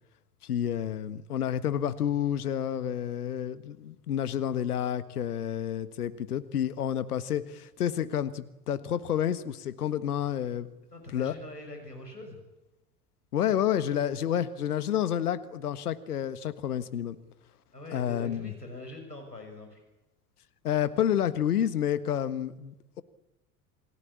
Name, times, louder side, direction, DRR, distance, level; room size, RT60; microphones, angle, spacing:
voice 1, 0.4-10.7 11.1-11.3 13.3-17.2 17.9-18.5 20.6-23.0, left 10 dB, 70° left, 15 dB, 1.5 m, -29 dB
voice 2, 10.9-12.4 17.7-19.8, left 1 dB, 90° left, 3 dB, 6.4 m, -43 dB
28.0 x 18.5 x 8.6 m, 0.97 s
figure-of-eight pair, 80°, 47 cm